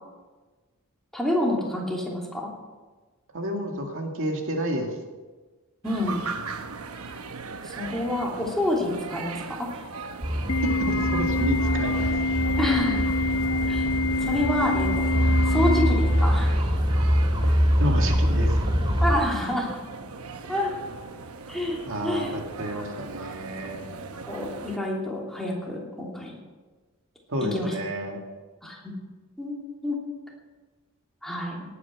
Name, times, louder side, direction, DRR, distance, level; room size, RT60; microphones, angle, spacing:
voice 1, 1.1-2.5 5.8-6.3 7.6-9.8 12.6-13.1 13.6-13.8 14.2-15.1 15.5-16.6 19.0-19.8 20.5-20.7 21.5-22.4 22.7-22.9 24.3-26.3 27.4-27.7 28.6-28.9 29.4-29.6 29.8-30.0 31.2-31.6, left 1 dB, ahead, -3 dB, 3.0 m, -28 dB
voice 2, 3.3-4.9 10.4-12.2 17.8-18.6 21.9-23.9 27.3-28.2, equal, 65° right, 2 dB, 2.1 m, -30 dB
sound 1, 5.8-24.8, right 4 dB, 90° right, 1.0 m, -39 dB
sound 2, 10.2-19.2, equal, 25° right, 2.2 m, -24 dB
Organ, 10.5-16.5, left 2 dB, 65° left, 0.6 m, -26 dB
18.0 x 9.5 x 6.0 m, 1.3 s
head